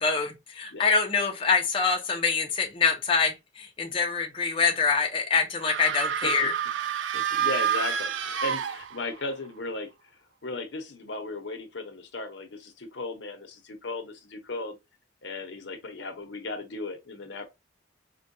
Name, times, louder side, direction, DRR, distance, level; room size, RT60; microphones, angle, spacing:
voice 1, 0.0-6.5, left 5 dB, 30° left, 0.5 m, -25 dB
voice 2, 0.7-1.0 6.2-6.5 7.1-9.9 10.4-14.8 15.2-17.5, left 2 dB, 65° left, 0.8 m, -36 dB
sound 1, 5.6-9.3, right 8 dB, 75° right, 0.3 m, -29 dB
4.4 x 2.2 x 2.6 m
head